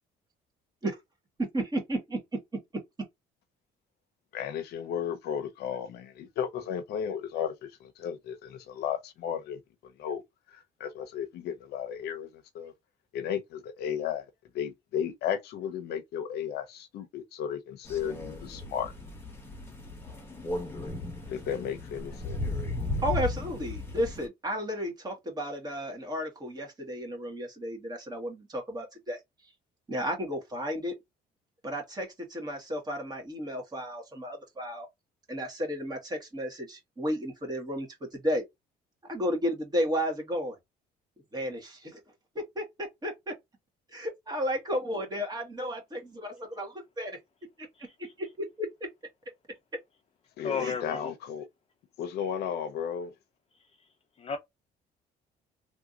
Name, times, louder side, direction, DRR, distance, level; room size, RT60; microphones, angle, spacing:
voice 1, 1.5-2.2 23.0-29.2 29.9-31.0 31.6-34.9 35.3-38.5 39.0-40.5 41.3-42.0 42.3-43.3 43.9-47.2 47.6-47.7 48.2-48.7 50.6-50.7, equal, 25° right, 1.6 m, -33 dB
voice 2, 4.3-9.6 10.0-10.2 10.5-12.7 13.1-14.2 14.5-18.9 21.3-22.5 50.4-51.5 52.0-53.1, left 8 dB, 75° left, 0.7 m, -34 dB
Crow, 17.8-24.3, left 2 dB, 15° left, 1.2 m, -36 dB
voice 3, 50.4-51.1 54.2-54.4, left 5 dB, 35° left, 0.7 m, -32 dB
3.3 x 2.7 x 2.4 m
cardioid pair, 110°, 17 cm